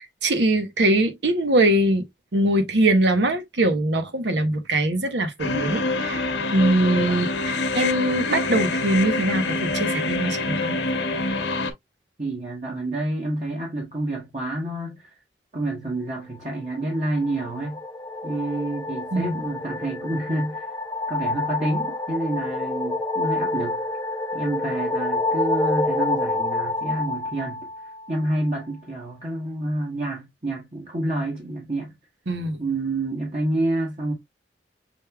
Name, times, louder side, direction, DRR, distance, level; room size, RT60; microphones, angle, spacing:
voice 1, 0.0-2.1 2.3-10.8 19.1-19.3 32.3-32.6, right 1 dB, 80° right, 1.0 m, -22 dB
sound 1, 5.4-11.7, left 3 dB, 70° left, 1.0 m, -26 dB
voice 2, 6.8-7.3 12.2-15.1 15.5-17.8 18.2-20.7 21.1-23.8 24.3-27.7 28.1-31.9 32.6-34.1, right 1 dB, 40° right, 1.1 m, -28 dB
sound 2, 16.9-28.3, left 2 dB, 20° left, 0.3 m, -28 dB
6.3 x 3.4 x 2.2 m
head